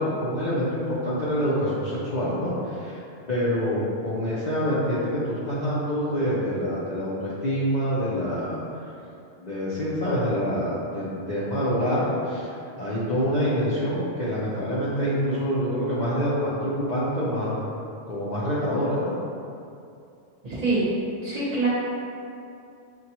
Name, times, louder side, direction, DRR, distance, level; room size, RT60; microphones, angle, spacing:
voice 1, 0.0-3.0 3.3-8.9 9.4-17.6 18.1-19.1, equal, 50° left, -9 dB, 0.5 m, -26 dB
voice 2, 20.4-20.9 21.2-21.7, right 3 dB, 35° right, -8 dB, 0.8 m, -25 dB
6.2 x 2.2 x 2.9 m, 2.6 s
omnidirectional pair, 1.3 m